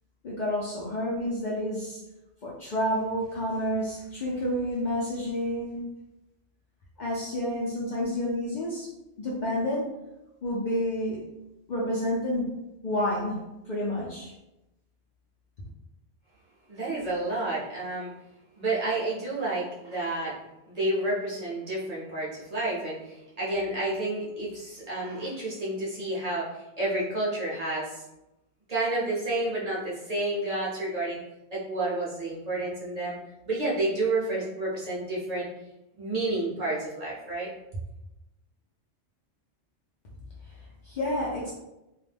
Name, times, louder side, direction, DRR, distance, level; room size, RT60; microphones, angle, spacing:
voice 1, 0.2-2.0 2.4-5.8 7.0-8.9 9.2-9.9 10.4-11.2 11.7-12.5 12.8-13.4 13.7-14.3 40.9-41.5, left 1 dB, 55° left, -5 dB, 0.6 m, -29 dB
voice 2, 16.7-18.1 18.6-20.4 20.7-28.0 28.7-31.2 31.5-33.1 33.5-35.5 36.0-37.5, right 2 dB, 45° right, -8 dB, 0.7 m, -30 dB
2.3 x 2.1 x 3.3 m, 0.94 s
omnidirectional pair, 1.1 m